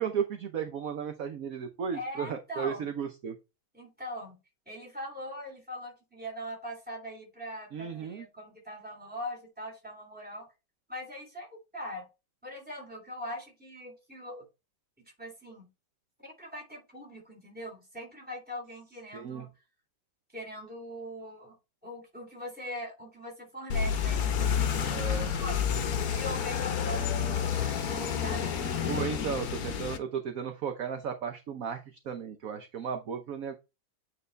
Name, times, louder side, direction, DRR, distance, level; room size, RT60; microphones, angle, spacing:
voice 1, 0.0-3.4 7.7-8.3 19.1-19.5 24.9-25.3 28.9-31.8 32.0-33.5, right 7 dB, 55° right, 1.1 m, -34 dB
voice 2, 1.9-2.9 3.7-4.3 4.7-10.5 10.9-12.1 12.4-14.4 15.0-15.7 16.2-19.5 20.3-21.5 21.8-25.0 25.3-25.6 26.1-29.5, equal, 5° right, 3.2 m, -41 dB
sound 1, 23.7-30.0, left 8 dB, 55° left, 1.3 m, -29 dB
9.0 x 4.1 x 3.2 m
omnidirectional pair, 2.2 m